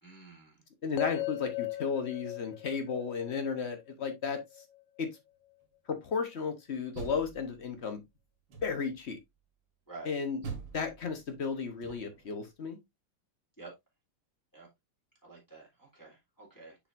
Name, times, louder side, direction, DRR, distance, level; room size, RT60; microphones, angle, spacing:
voice 1, 0.0-0.6 9.9-10.1 13.6-13.7 14.5-14.7 15.2-16.8, right 3 dB, 10° left, 2.0 m, -49 dB
voice 2, 0.8-4.4 5.0-5.1 5.9-8.0 8.6-9.2 10.0-10.4 10.7-12.8, left 5 dB, 45° left, 0.8 m, -34 dB
sound 1, 1.0-5.1, left 16 dB, 70° left, 1.2 m, -39 dB
Door, 6.7-7.9 8.5-9.1 10.4-12.3, right 5 dB, 60° right, 2.1 m, -45 dB
6.7 x 5.7 x 2.5 m
omnidirectional pair, 2.4 m